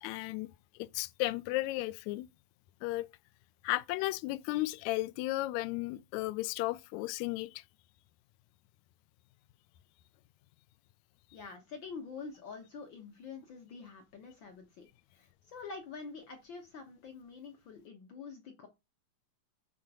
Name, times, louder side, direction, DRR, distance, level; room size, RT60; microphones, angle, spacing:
voice 1, 0.0-0.5 0.7-2.3 2.8-3.1 3.6-7.6, left 18 dB, 85° left, 1.6 m, -34 dB
voice 2, 11.3-14.9 15.1-18.7, left 5 dB, 65° left, 1.1 m, -46 dB
10.5 x 3.9 x 4.7 m
omnidirectional pair, 3.9 m